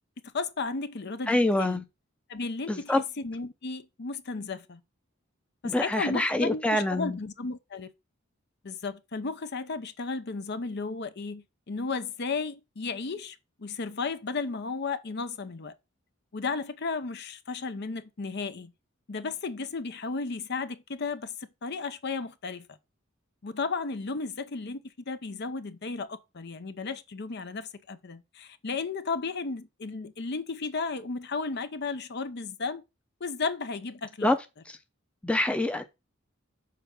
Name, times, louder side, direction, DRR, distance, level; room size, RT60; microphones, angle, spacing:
voice 1, 0.2-1.8 2.3-4.8 5.6-7.9 8.6-15.7 16.3-18.7 19.1-21.3 21.6-22.7 23.4-32.8 33.2-34.4, left 4 dB, 55° left, 0.7 m, -34 dB
voice 2, 1.3-1.8 2.7-3.0 5.6-7.2 34.2-34.4 35.2-35.8, left 1 dB, 5° left, 0.6 m, -25 dB
6.8 x 4.5 x 5.1 m
head